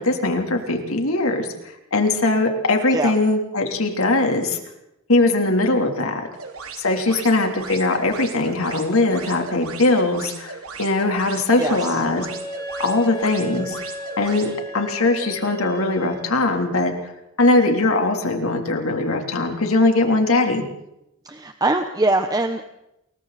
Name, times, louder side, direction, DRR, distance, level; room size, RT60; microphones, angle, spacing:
voice 1, 0.0-4.6 5.1-6.2 6.8-12.3 12.8-13.8 14.2-16.9 17.4-20.6, left 2 dB, 80° left, 3 dB, 3.5 m, -20 dB
sound 1, 6.3-14.5, right 5 dB, 85° right, 2.9 m, -37 dB
voice 2, 11.6-12.0 21.2-22.6, right 2 dB, 20° right, 7 dB, 1.0 m, -22 dB
Wind instrument woodwind instrument, 11.7-16.4, equal, 15° left, 3.0 m, -35 dB
28.5 x 22.0 x 4.3 m, 0.85 s
head